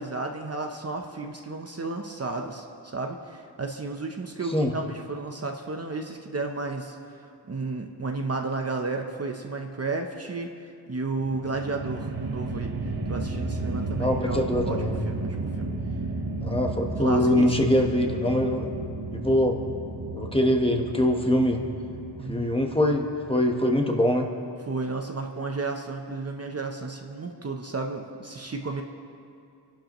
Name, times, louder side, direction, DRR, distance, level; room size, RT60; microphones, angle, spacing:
voice 1, 0.0-7.0 7.5-12.7 13.1-15.7 17.0-17.8 22.2-22.5 24.7-28.8, right 3 dB, 35° right, 3 dB, 0.8 m, -33 dB
sound 1, 11.2-23.5, right 2 dB, 60° right, 1.3 m, -33 dB
voice 2, 14.0-15.0 16.4-18.7 19.1-19.6 20.1-21.6 22.3-24.3, left 1 dB, 15° left, 2 dB, 1.1 m, -23 dB
26.5 x 11.5 x 3.0 m, 2.5 s
wide cardioid pair, 130°, 43 cm